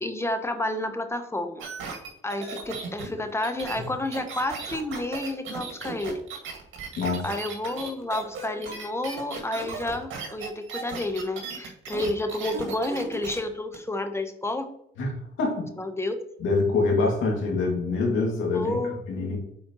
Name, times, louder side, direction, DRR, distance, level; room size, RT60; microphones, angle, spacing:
voice 1, 0.0-1.7 2.2-6.2 7.2-14.7 15.8-16.2 18.5-19.0, left 1 dB, 15° left, 7 dB, 0.9 m, -30 dB
sound 1, 1.6-13.4 13.7-13.8, right 4 dB, 75° right, 1.9 m, -37 dB
voice 2, 15.0-15.7 16.4-19.4, left 3 dB, 85° left, 0 dB, 2.2 m, -25 dB
8.6 x 4.2 x 3.0 m, 0.76 s
cardioid pair, 90°, 20 cm